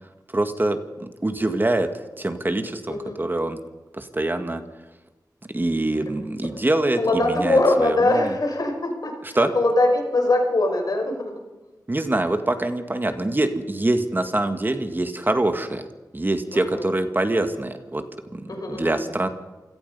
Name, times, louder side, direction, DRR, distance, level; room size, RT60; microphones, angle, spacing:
voice 1, 0.3-1.9 2.2-3.6 3.9-4.6 5.5-8.3 9.3-9.5 11.9-15.8 16.1-18.0 18.3-19.3, right 2 dB, 30° right, 8 dB, 1.9 m, -24 dB
voice 2, 7.0-11.3 16.5-16.9 18.5-19.0, left 2 dB, 65° left, 3 dB, 5.5 m, -22 dB
27.5 x 17.5 x 5.6 m, 1.1 s
wide cardioid pair, 70°, 7 cm